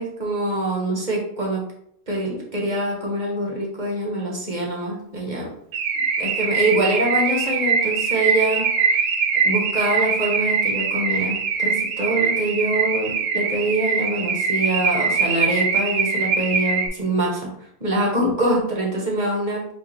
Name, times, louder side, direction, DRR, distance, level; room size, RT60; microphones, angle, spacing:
voice 1, 0.0-1.6 2.1-5.5 6.2-8.9 9.4-17.5 17.8-19.8, right 1 dB, 30° right, -2 dB, 1.1 m, -24 dB
Car / Alarm, 5.7-16.9, right 5 dB, 75° right, 1.1 m, -22 dB
4.6 x 2.4 x 4.5 m, 0.69 s
omnidirectional pair, 1.7 m